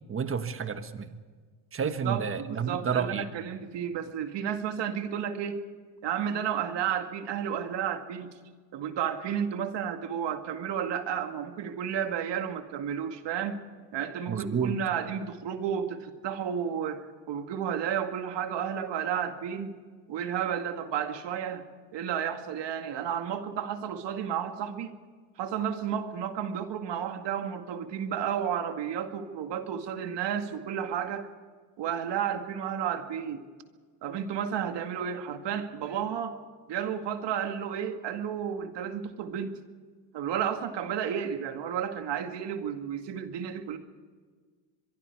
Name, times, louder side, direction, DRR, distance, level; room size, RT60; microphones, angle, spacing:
voice 1, 0.1-1.2 1.7-3.2 14.3-14.8, right 6 dB, 30° right, 9 dB, 1.4 m, -30 dB
voice 2, 1.8-5.6 6.0-8.4 8.7-13.6 13.9-19.8 20.1-21.6 21.9-25.0 25.4-31.3 31.8-33.5 34.0-36.4 36.7-39.6 40.1-43.8, right 8 dB, 60° right, 7 dB, 2.2 m, -32 dB
24.5 x 23.0 x 4.8 m, 1.5 s
cardioid pair, 105°, 47 cm